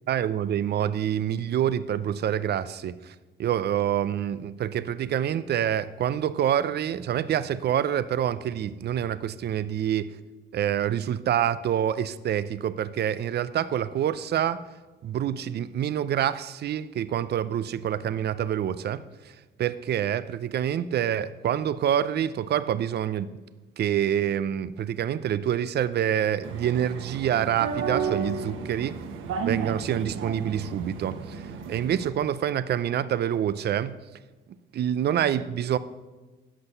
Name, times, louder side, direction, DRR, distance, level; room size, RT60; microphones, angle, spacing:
voice 1, 0.1-3.1 3.4-10.1 10.5-14.6 15.0-19.0 19.6-23.3 23.8-29.0 29.4-31.4 31.7-34.0 34.7-35.8, right 10 dB, 55° right, 15 dB, 0.5 m, -26 dB
sound 1, 26.4-32.1, right 5 dB, 85° right, 1.1 m, -33 dB
11.0 x 6.2 x 6.7 m, 1.2 s
cardioid pair, 90°, 20 cm